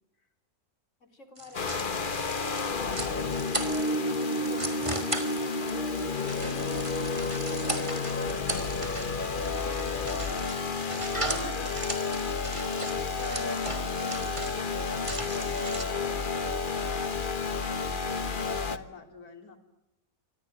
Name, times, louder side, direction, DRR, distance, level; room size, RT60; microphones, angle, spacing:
voice 1, 1.0-3.3 9.5-12.1 15.7-16.6 16.9-17.7, left 2 dB, 55° left, 10 dB, 4.2 m, -49 dB
sound 1, 1.4-15.8, right 2 dB, 20° right, 3.2 m, -38 dB
sound 2, 1.5-18.8, left 3 dB, 35° left, 1.4 m, -31 dB
voice 2, 3.3-5.1 5.5-7.3 7.9-8.6 10.9-11.8 12.6-15.2 15.5-16.1 18.3-19.6, left 3 dB, 90° left, 7 dB, 3.5 m, -47 dB
26.5 x 25.5 x 8.9 m, 0.92 s
omnidirectional pair, 1.6 m